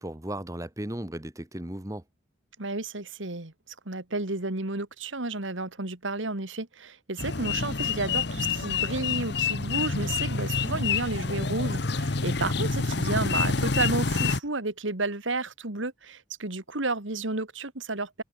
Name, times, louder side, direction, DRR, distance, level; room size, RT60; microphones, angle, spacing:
voice 1, 0.0-2.0, right 1 dB, 15° right, 1.1 m, -35 dB
voice 2, 2.6-3.5 3.9-18.2, right 2 dB, 75° right, 2.4 m, -32 dB
sound 1, 7.2-14.4, left 4 dB, 55° left, 1.1 m, -27 dB
head